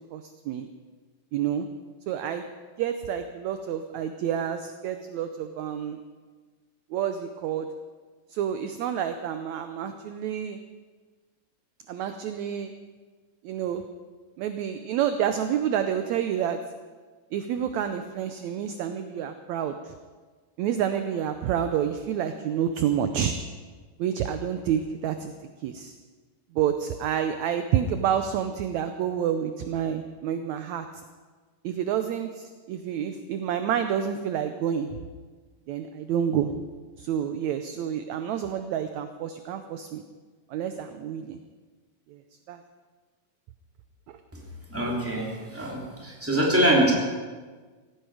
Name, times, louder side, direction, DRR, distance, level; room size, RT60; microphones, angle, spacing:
voice 1, 0.1-0.7 1.3-1.7 2.1-2.5 2.8-6.0 6.9-7.7 8.3-10.6 11.9-12.7 13.4-13.8 14.4-16.6 17.3-19.9 20.6-23.3 24.0-25.9 26.5-30.9 31.6-35.0 35.7-36.5 37.0-40.0 40.5-41.4 42.1-42.2 42.5-42.6 44.1-44.2, right 9 dB, 75° right, 8 dB, 1.8 m, -29 dB
voice 2, 44.7-46.9, right 1 dB, 5° right, -3 dB, 2.7 m, -24 dB
17.0 x 15.5 x 4.9 m, 1.4 s
omnidirectional pair, 3.8 m